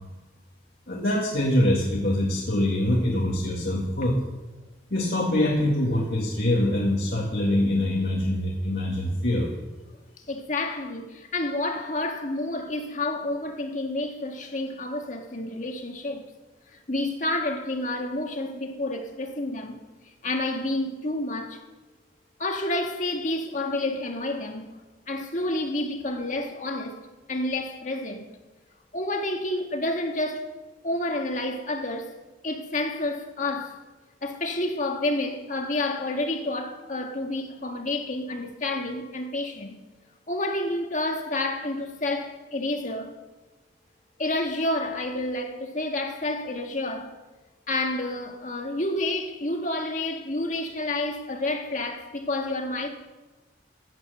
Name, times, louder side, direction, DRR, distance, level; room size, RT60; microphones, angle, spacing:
voice 1, 0.9-4.2 4.9-9.5, left 1 dB, 60° left, 1.9 m, -24 dB
voice 2, 10.3-16.3 16.7-19.8 20.2-21.6 22.4-24.7 25.1-27.0 27.3-28.3 28.9-30.5 30.8-32.1 32.4-33.8 34.2-39.8 40.3-43.1 44.2-47.1 47.7-52.9, left 2 dB, 45° left, 1.7 m, -29 dB
16.0 x 8.7 x 6.7 m
head